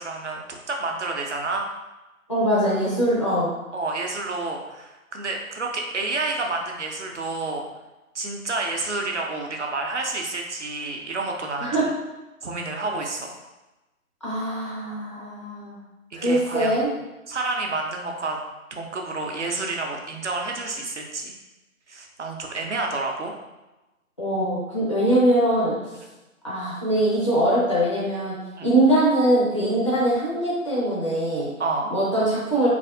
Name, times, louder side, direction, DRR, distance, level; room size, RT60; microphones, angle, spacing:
voice 1, 0.0-1.7 3.7-7.6 8.1-11.9 12.4-13.3 16.1-16.8 17.3-18.4 18.7-21.3 21.9-23.3 28.6-28.7 31.6-31.9, right 3 dB, 55° right, 1 dB, 0.7 m, -29 dB
voice 2, 2.3-3.5 11.6-11.8 14.2-15.8 16.1-16.9 24.2-25.8 26.4-28.4 28.6-31.5 31.9-32.7, right 1 dB, 20° left, -9 dB, 0.6 m, -22 dB
3.9 x 3.3 x 2.6 m, 1.1 s
figure-of-eight pair, 160°, 43 cm